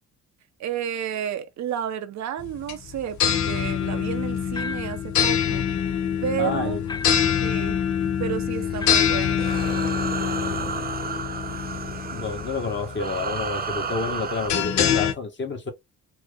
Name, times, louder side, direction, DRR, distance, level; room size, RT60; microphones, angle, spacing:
voice 1, 0.6-5.6 6.2-6.8 7.4-7.8 8.2-9.4, right 9 dB, 65° right, 0.8 m, -31 dB
sound 1, 2.4-15.1, left 8 dB, 70° left, 0.9 m, -25 dB
sound 2, 4.5-5.1 6.9-7.4 8.8-9.2, left 4 dB, 15° left, 0.3 m, -36 dB
voice 2, 6.4-7.1 12.1-15.7, left 4 dB, 40° left, 1.4 m, -29 dB
sound 3, 8.5-14.5, right 6 dB, 30° right, 0.8 m, -32 dB
4.5 x 2.1 x 3.3 m
cardioid pair, 90°, 30 cm